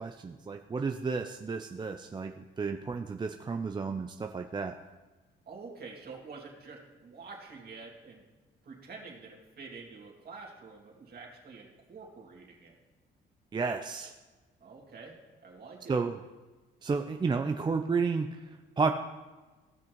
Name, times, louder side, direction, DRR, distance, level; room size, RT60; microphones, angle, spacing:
voice 1, 0.0-2.3 2.6-4.7 13.5-14.1 15.9-16.2 16.8-18.3 18.8-18.9, right 4 dB, 20° right, 5 dB, 0.4 m, -31 dB
voice 2, 5.5-8.2 8.6-12.7 14.6-16.0, right 4 dB, 50° right, -1 dB, 2.3 m, -47 dB
16.0 x 6.1 x 3.1 m, 1.3 s
cardioid pair, 90°, 20 cm